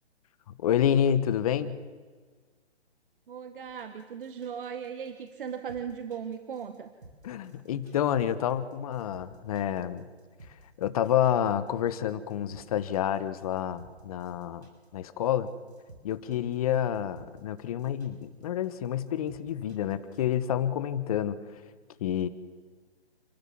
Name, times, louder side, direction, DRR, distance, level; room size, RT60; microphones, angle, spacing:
voice 1, 0.5-1.8 7.2-10.1 10.8-15.5 16.0-21.4 22.0-22.3, left 10 dB, 35° left, 14 dB, 1.2 m, -28 dB
voice 2, 3.3-6.9, right 7 dB, 50° right, 9 dB, 1.4 m, -38 dB
sound 1, 3.6-20.4, right 2 dB, 80° right, 7.0 m, -55 dB
29.5 x 12.5 x 7.4 m, 1.5 s
hypercardioid pair, 150°, 33 cm